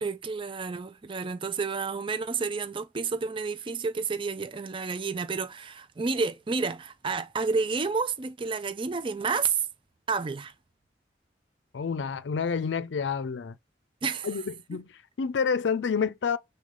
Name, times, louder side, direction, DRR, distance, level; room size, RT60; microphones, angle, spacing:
voice 1, 0.0-9.6 10.1-10.5 14.0-14.3, right 4 dB, 30° right, 0.5 m, -30 dB
voice 2, 11.7-13.6 14.2-16.4, left 6 dB, 85° left, 0.5 m, -29 dB
6.2 x 2.3 x 3.7 m
head